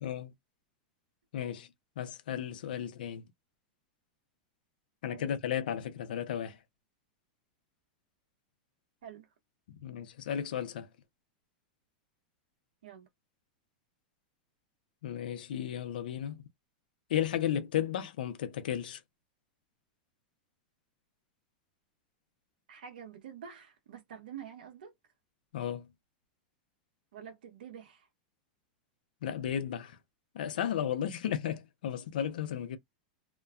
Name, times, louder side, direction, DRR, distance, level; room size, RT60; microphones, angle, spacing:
voice 1, 0.0-0.3 1.3-1.7 2.0-3.2 5.0-6.6 9.8-10.9 15.0-16.4 17.1-19.0 25.5-25.9 29.2-30.0 30.3-32.8, left 10 dB, 80° left, 0.7 m, -34 dB
voice 2, 22.7-24.9 27.1-28.1, right 8 dB, 85° right, 1.0 m, -47 dB
2.9 x 2.2 x 2.4 m
supercardioid pair, 135°, 5 cm